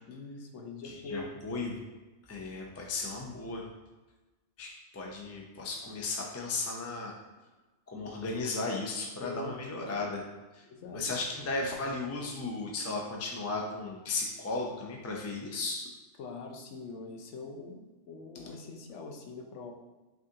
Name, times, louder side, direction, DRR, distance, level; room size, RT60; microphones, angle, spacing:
voice 1, 0.1-1.3 9.2-9.6 10.7-11.1 11.3-11.5 16.2-19.7, left 3 dB, 75° left, 2 dB, 0.9 m, -43 dB
voice 2, 0.8-1.8 2.3-3.7 4.6-7.1 7.9-10.2 10.5-10.6 10.9-15.9, left 3 dB, 25° left, -1 dB, 0.3 m, -35 dB
6.0 x 2.5 x 2.7 m, 1.2 s
omnidirectional pair, 1.2 m